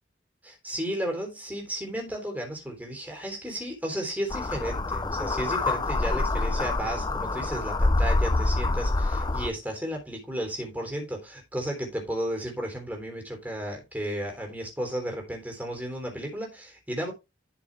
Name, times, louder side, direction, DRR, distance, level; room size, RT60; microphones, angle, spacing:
voice 1, 0.4-17.1, right 1 dB, 10° right, 3.4 m, -33 dB
sound 1, 4.3-9.5, left 2 dB, 20° left, 0.6 m, -26 dB
11.5 x 6.0 x 3.4 m
head